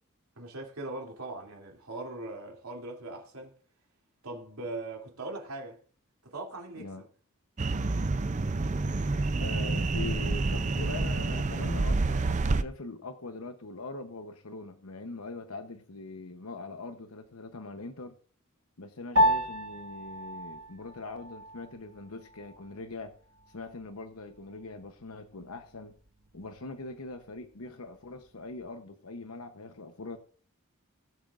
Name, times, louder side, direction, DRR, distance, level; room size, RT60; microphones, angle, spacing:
voice 1, 0.4-3.6 4.2-5.8 6.2-7.1, right 2 dB, 80° right, 2.9 m, -40 dB
sound 1, 7.6-12.6, right 3 dB, 35° right, 0.5 m, -28 dB
voice 2, 9.4-18.2 18.8-23.1 23.5-25.9 26.3-30.2, left 3 dB, 80° left, 0.9 m, -42 dB
Piano, 19.2-28.8, equal, 65° right, 1.4 m, -34 dB
21.5 x 7.2 x 2.5 m
head